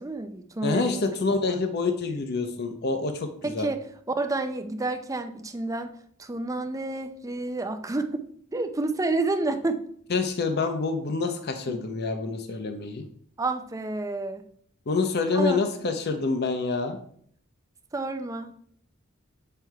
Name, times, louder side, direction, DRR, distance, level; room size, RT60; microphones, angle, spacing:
voice 1, 0.0-1.1 1.5-1.6 3.4-3.8 4.2-5.9 6.2-8.2 8.5-9.8 11.7-11.8 13.4-14.4 15.3-15.6 17.9-18.5, right 2 dB, 15° right, 7 dB, 0.5 m, -29 dB
voice 2, 0.6-3.7 10.1-13.0 14.9-17.0, left 4 dB, 50° left, 7 dB, 0.7 m, -27 dB
7.6 x 3.4 x 4.6 m, 0.62 s
head